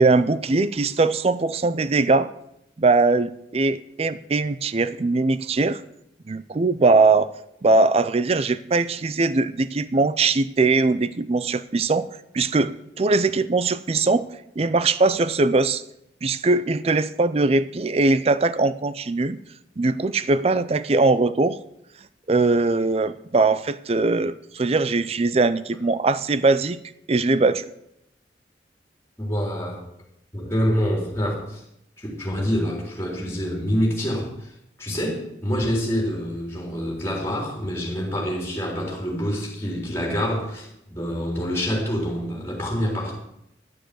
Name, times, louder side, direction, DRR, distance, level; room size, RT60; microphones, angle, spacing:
voice 1, 0.0-2.3 2.8-5.8 6.3-7.3 7.6-12.1 12.3-14.2 14.6-15.8 16.2-19.4 19.8-21.6 22.3-26.8 27.1-27.6, right 3 dB, 35° right, 14 dB, 0.4 m, -21 dB
voice 2, 29.2-29.8 30.3-31.6 32.0-34.5 34.8-43.1, equal, 15° left, -2 dB, 3.7 m, -26 dB
11.5 x 7.1 x 7.7 m, 0.79 s
head